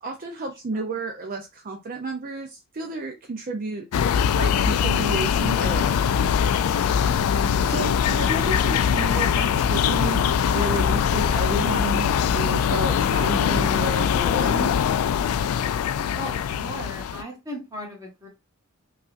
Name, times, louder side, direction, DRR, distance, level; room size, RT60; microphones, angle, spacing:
voice 1, 0.0-3.9 4.3-6.1 7.7-14.7, right 2 dB, 40° right, 3 dB, 0.5 m, -32 dB
voice 2, 0.7-1.0 16.1-18.3, left 1 dB, 15° right, -1 dB, 1.5 m, -38 dB
sound 1, 3.9-17.2, left 8 dB, 85° left, 0.3 m, -22 dB
5.4 x 2.4 x 2.5 m, 0.23 s
head